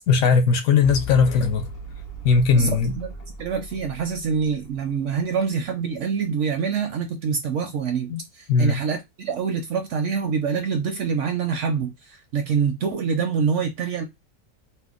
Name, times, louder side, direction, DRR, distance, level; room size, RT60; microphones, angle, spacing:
voice 1, 0.1-1.7 2.2-3.0 8.1-8.2 8.5-8.8, left 5 dB, 70° left, 0.9 m, -19 dB
sound 1, 0.8-5.3, left 2 dB, 40° left, 0.5 m, -37 dB
voice 2, 2.5-3.1 3.4-14.0, right 6 dB, 70° right, 0.7 m, -25 dB
2.7 x 2.1 x 3.5 m
omnidirectional pair, 1.6 m